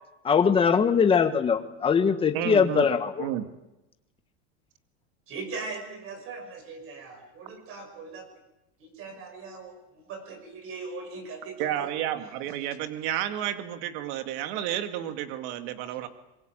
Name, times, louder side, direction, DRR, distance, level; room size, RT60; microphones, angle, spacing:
voice 1, 0.2-3.3, left 6 dB, 15° left, 7 dB, 1.4 m, -22 dB
voice 2, 2.3-2.9 3.2-3.5 11.6-16.1, right 11 dB, 55° right, 8 dB, 2.2 m, -31 dB
voice 3, 5.3-8.3 8.8-11.9, right 3 dB, 40° right, 6 dB, 6.4 m, -40 dB
24.0 x 22.0 x 9.1 m, 0.95 s
supercardioid pair, 170°, 35 cm